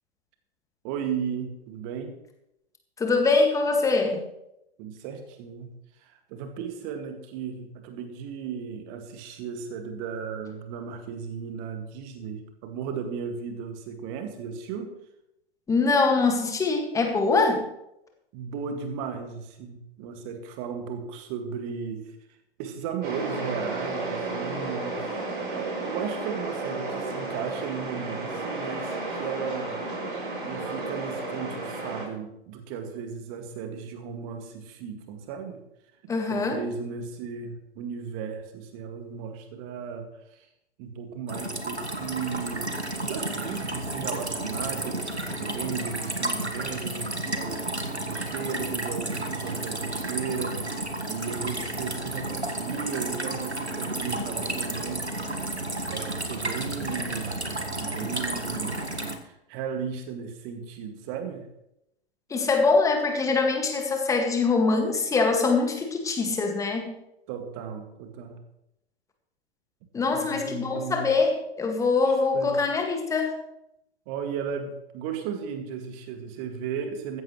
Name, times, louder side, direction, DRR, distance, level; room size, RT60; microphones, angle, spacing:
voice 1, 0.8-2.1 4.8-5.7 6.0-14.9 18.3-22.2 22.6-29.8 30.4-35.6 36.3-40.5 40.8-42.7 42.9-55.1 55.9-57.4 57.8-58.8 59.2-61.5 67.3-68.4 70.1-71.1 72.1-72.5 74.1-77.2, right 6 dB, 30° right, 5 dB, 2.2 m, -35 dB
voice 2, 3.0-4.2 15.7-17.7 36.1-36.6 62.3-67.0 69.9-73.3, left 4 dB, 10° left, 3 dB, 2.0 m, -23 dB
sound 1, 23.0-32.1, right 3 dB, 55° right, 6.4 m, -33 dB
sound 2, 41.3-59.2, right 1 dB, 90° right, 1.7 m, -32 dB
15.0 x 14.5 x 3.2 m, 0.83 s
figure-of-eight pair, 110°, 32 cm